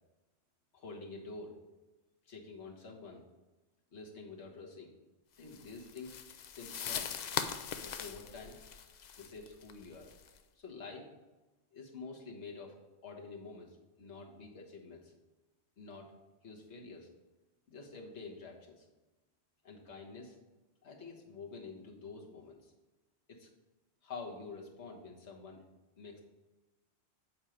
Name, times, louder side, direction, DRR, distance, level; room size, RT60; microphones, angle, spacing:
voice 1, 0.7-1.5 2.3-3.2 3.9-4.9 5.4-6.2 6.5-7.1 7.8-8.6 9.2-10.1 10.6-11.1 11.7-12.7 13.0-15.1 15.8-16.1 16.4-17.1 17.7-18.9 19.6-20.4 20.8-22.7 23.3-23.5 24.0-25.6 26.0-26.2, left 4 dB, 85° left, -1 dB, 1.5 m, -48 dB
sound 1, 5.5-10.4, left 7 dB, 55° left, 0.5 m, -41 dB
7.6 x 4.4 x 5.0 m, 1.1 s
omnidirectional pair, 1.1 m